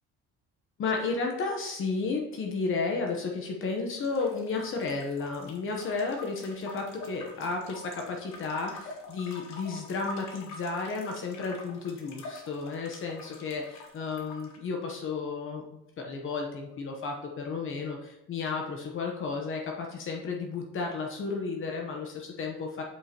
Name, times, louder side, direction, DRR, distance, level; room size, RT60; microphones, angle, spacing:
voice 1, 0.8-22.8, left 4 dB, 45° left, 1 dB, 0.9 m, -33 dB
sound 1, 4.0-14.6, left 2 dB, 65° left, 1.2 m, -46 dB
7.9 x 5.5 x 2.9 m, 0.85 s
cardioid pair, 165°, 29 cm